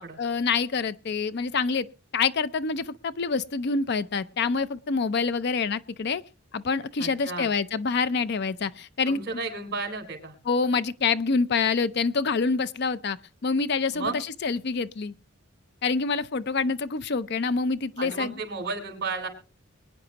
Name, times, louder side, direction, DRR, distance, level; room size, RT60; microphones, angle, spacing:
voice 1, 0.2-1.9 2.1-6.2 6.5-9.2 10.5-13.2 13.4-15.1 15.8-18.4, left 4 dB, 55° left, 0.5 m, -26 dB
voice 2, 7.0-7.5 9.1-10.4 13.9-14.2 18.0-19.3, right 3 dB, 50° right, 4.0 m, -33 dB
23.5 x 9.7 x 2.9 m
head